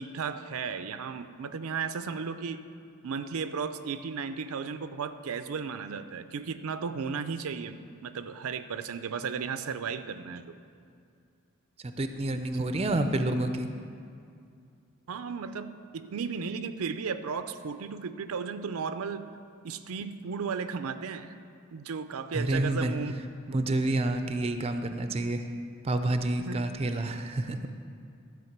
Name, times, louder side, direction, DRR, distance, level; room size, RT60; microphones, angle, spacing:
voice 1, 0.0-2.6 3.0-10.6 12.3-12.6 15.1-19.3 19.6-21.3 21.7-23.1 26.4-26.6, right 5 dB, 85° right, 11 dB, 0.5 m, -35 dB
voice 2, 11.8-13.7 22.3-23.2 23.5-25.5 25.8-27.7, right 2 dB, 30° right, 8 dB, 0.4 m, -29 dB
12.5 x 5.0 x 7.3 m, 2.4 s
head